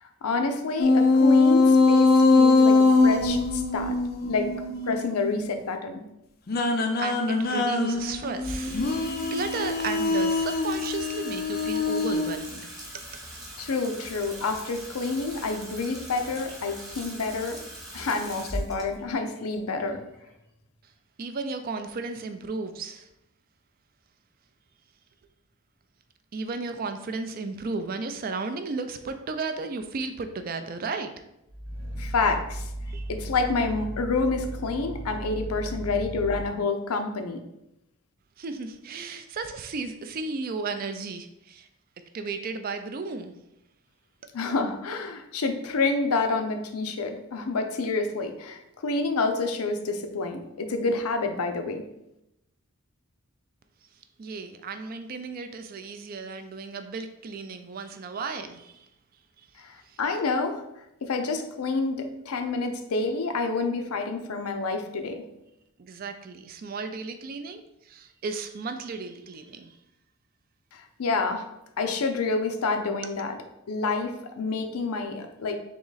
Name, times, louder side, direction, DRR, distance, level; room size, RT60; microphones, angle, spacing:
voice 1, 0.0-4.0 4.3-4.5 4.9-6.0 13.6-17.6 17.9-20.0 32.0-32.7 33.1-37.4 44.3-51.8 59.6-60.6 61.0-65.2 70.7-71.4 71.8-73.4 73.7-75.6, left 3 dB, 90° left, 6 dB, 0.5 m, -28 dB
sound 1, 0.8-5.3 6.5-12.4, left 3 dB, 45° left, 0.4 m, -22 dB
voice 2, 7.0-13.3 21.2-23.1 26.3-31.1 32.9-33.1 38.4-41.7 42.1-43.3 54.2-58.9 59.4-59.5 59.9-60.0 65.8-69.8, right 4 dB, 40° right, 8 dB, 0.3 m, -34 dB
Water tap faucet / Sink (filling or washing), 8.4-20.8, right 1 dB, 20° right, 1.0 m, -41 dB
Growling, 31.5-36.4, right 1 dB, 60° right, 0.8 m, -36 dB
3.7 x 3.0 x 3.9 m, 0.86 s
head